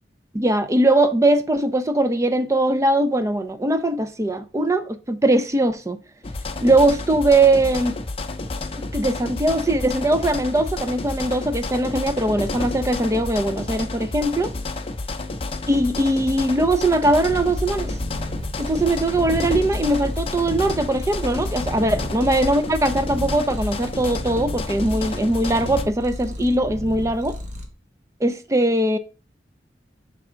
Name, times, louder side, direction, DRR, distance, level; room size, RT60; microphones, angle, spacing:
voice 1, 0.3-6.0 6.6-8.0 8.7-14.5 15.7-18.0 18.6-27.4 28.2-29.0, right 1 dB, 15° right, 0.5 m, -20 dB
sound 1, 6.2-25.8, left 2 dB, 35° left, 0.6 m, -30 dB
Purr, 17.2-27.7, left 1 dB, 45° right, 1.0 m, -33 dB
6.1 x 3.5 x 4.4 m
head